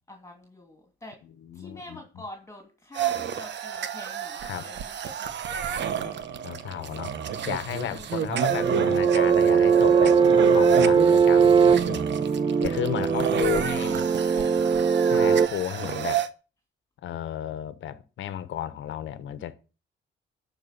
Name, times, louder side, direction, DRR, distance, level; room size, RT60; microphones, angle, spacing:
voice 1, 0.1-1.2 1.5-6.2 7.9-8.3 12.4-14.7, left 1 dB, 15° left, 2.6 m, -46 dB
voice 2, 1.2-2.0 4.4-4.7 6.4-7.1 7.5-10.2 10.5-12.0 12.6-14.0 15.0-16.2 17.0-19.6, left 11 dB, 75° left, 1.2 m, -33 dB
sound 1, 2.9-16.3, right 9 dB, 65° right, 1.1 m, -30 dB
sound 2, 8.5-15.5, right 6 dB, 25° right, 0.5 m, -20 dB
11.0 x 5.0 x 6.6 m
cardioid pair, 90°, 20 cm